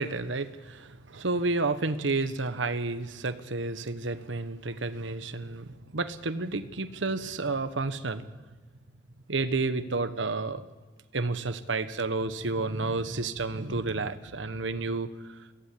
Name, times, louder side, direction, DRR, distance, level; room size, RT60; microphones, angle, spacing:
voice 1, 0.0-8.4 9.3-10.7 11.1-15.5, right 3 dB, 80° right, 11 dB, 1.2 m, -31 dB
22.5 x 16.0 x 8.6 m, 1.3 s
head